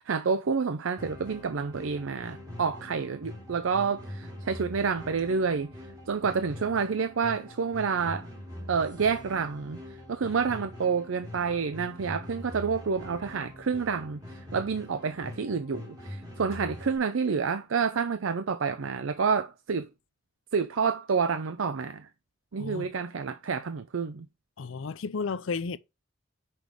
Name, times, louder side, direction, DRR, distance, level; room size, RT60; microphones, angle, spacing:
voice 1, 0.0-5.7 6.1-8.3 8.7-9.8 10.1-19.9 20.5-22.1 22.5-24.3, right 5 dB, 80° right, 0.5 m, -29 dB
sound 1, 1.0-17.0, left 1 dB, 20° right, 2.6 m, -43 dB
voice 2, 22.6-22.9 24.6-25.8, left 4 dB, 75° left, 0.5 m, -33 dB
6.1 x 5.3 x 4.7 m
head